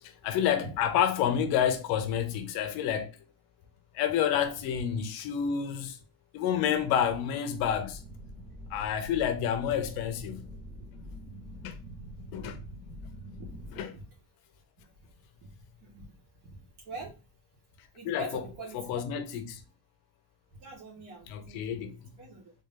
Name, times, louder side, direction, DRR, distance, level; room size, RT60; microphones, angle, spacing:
voice 1, 0.0-3.1 3.9-6.0 6.3-8.0 8.7-10.5 11.6-11.8 12.3-12.6 13.8-13.9 18.0-18.4 18.7-19.6 21.3-21.9, left 9 dB, 55° left, 0.6 m, -29 dB
sound 1, 7.5-13.8, equal, 15° right, 1.4 m, -45 dB
voice 2, 16.9-17.2 17.9-19.0 20.5-22.5, right 4 dB, 65° right, 1.7 m, -44 dB
3.4 x 2.6 x 3.6 m
cardioid pair, 170°, 45 cm